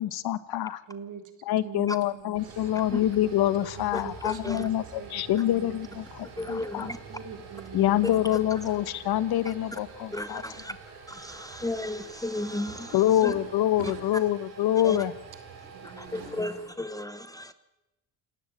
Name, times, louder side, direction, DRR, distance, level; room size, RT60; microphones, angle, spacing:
voice 1, 0.0-0.8 1.5-4.8 5.1-6.9 7.7-10.4 12.9-15.1, left 12 dB, 70° left, 1.3 m, -26 dB
voice 2, 0.9-1.3 1.6-2.7 3.7-4.7 5.0-6.3 7.1-7.9 13.8-13.9 15.6-16.4, right 6 dB, 50° right, 3.3 m, -44 dB
sound 1, 2.1-16.7, right 5 dB, 85° right, 7.3 m, -46 dB
voice 3, 3.9-4.7 6.4-7.0 8.6-8.7 9.4-9.8 10.1-10.7 11.1-13.3 13.8-13.9 14.8-15.0 15.8-17.5, left 1 dB, 10° left, 1.0 m, -34 dB
28.0 x 13.0 x 8.9 m
cardioid pair, 90°, 40 cm